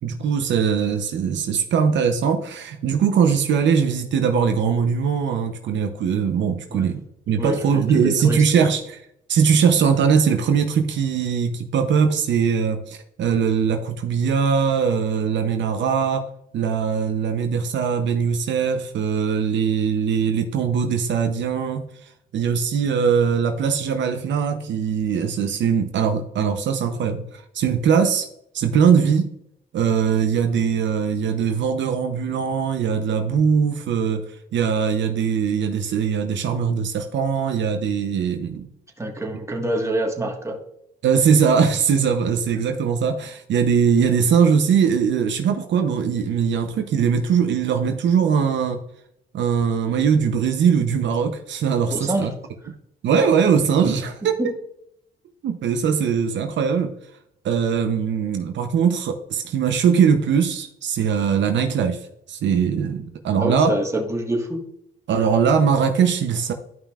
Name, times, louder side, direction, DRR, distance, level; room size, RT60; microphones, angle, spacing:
voice 1, 0.0-9.0 9.3-16.3 16.5-21.9 22.3-28.3 28.5-29.3 29.7-34.3 34.5-38.7 41.0-48.8 49.3-52.3 53.0-54.4 55.4-56.9 57.4-63.7 65.1-66.5, right 6 dB, 65° right, 0.8 m, -21 dB
voice 2, 7.4-8.6 39.0-40.6 51.9-52.3 54.4-54.5 63.4-64.6, right 1 dB, 15° right, 1.6 m, -26 dB
12.5 x 5.6 x 2.4 m
cardioid pair, 90°, 20 cm